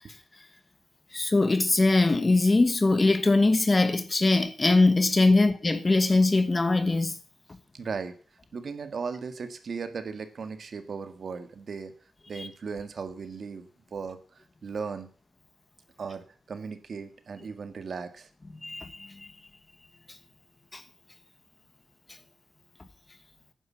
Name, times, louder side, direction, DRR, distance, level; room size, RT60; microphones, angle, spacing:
voice 1, 1.1-7.2 12.4-12.5 18.6-19.3 20.7-20.8, left 2 dB, 25° left, 1.3 m, -22 dB
voice 2, 7.7-8.2 8.5-11.9 12.3-15.1 16.0-18.3, right 5 dB, 50° right, 1.7 m, -37 dB
11.0 x 9.6 x 7.4 m
wide cardioid pair, 145°, 0 cm